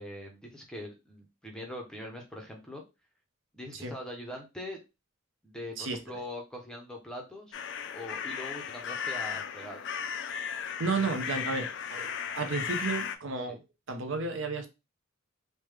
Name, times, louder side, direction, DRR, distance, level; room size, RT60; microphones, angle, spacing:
voice 1, 0.0-2.8 3.5-4.8 5.4-7.6 7.9-9.8 13.5-13.6, left 1 dB, 5° left, 0.6 m, -42 dB
sound 1, 7.5-13.2, left 7 dB, 55° left, 0.3 m, -36 dB
voice 2, 10.8-13.6 13.9-14.7, right 4 dB, 60° right, 0.6 m, -32 dB
3.2 x 2.1 x 3.3 m
head